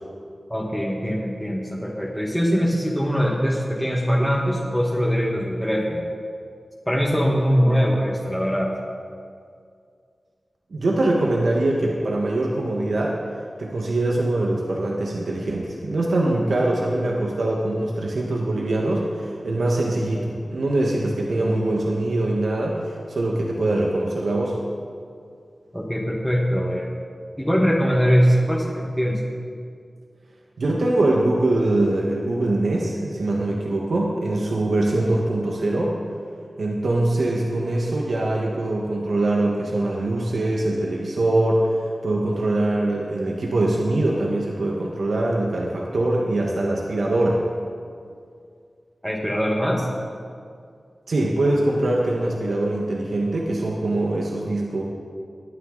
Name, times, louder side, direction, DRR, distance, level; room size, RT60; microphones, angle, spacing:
voice 1, 0.5-6.0 6.9-8.8 25.7-26.9 27.4-29.2 49.0-49.9, equal, ahead, -3 dB, 1.5 m, -22 dB
voice 2, 10.7-13.2 13.6-24.6 30.6-36.0 36.6-47.4 51.1-54.8, right 2 dB, 80° right, -2 dB, 1.4 m, -23 dB
20.5 x 9.6 x 3.9 m, 2.2 s
wide cardioid pair, 60°, 0 cm